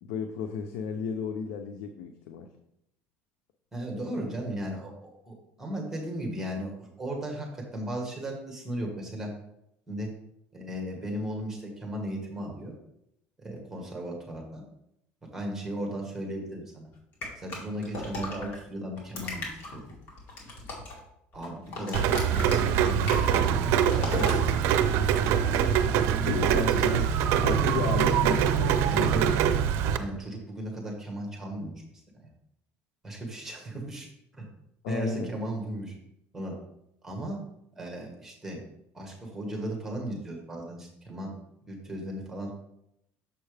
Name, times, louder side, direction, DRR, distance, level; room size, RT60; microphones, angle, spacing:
voice 1, 0.0-2.5 26.2-27.1 27.4-29.4 34.8-35.3, left 6 dB, 85° left, 5 dB, 0.6 m, -34 dB
voice 2, 3.7-9.3 9.9-10.1 10.5-12.8 13.4-14.6 15.3-16.9 17.4-19.5 19.7-19.8 21.3-24.4 26.1-26.3 26.7-26.9 28.9-29.3 30.0-31.7 32.2-32.3 33.0-34.1 34.3-34.5 34.9-35.9 36.3-36.6 37.0-37.4 37.8-38.6 38.9-41.4 41.7-42.5, right 1 dB, 10° right, 0 dB, 1.7 m, -36 dB
sound 1, 17.2-18.6 19.0-21.0 21.3-24.4, left 2 dB, 55° left, 2.1 m, -35 dB
Rain, 21.9-30.0, right 8 dB, 65° right, 0.5 m, -24 dB
sound 2, 23.1-28.1, right 1 dB, 25° left, 2.4 m, -44 dB
6.9 x 5.5 x 3.4 m, 0.78 s
cardioid pair, 140°, 5 cm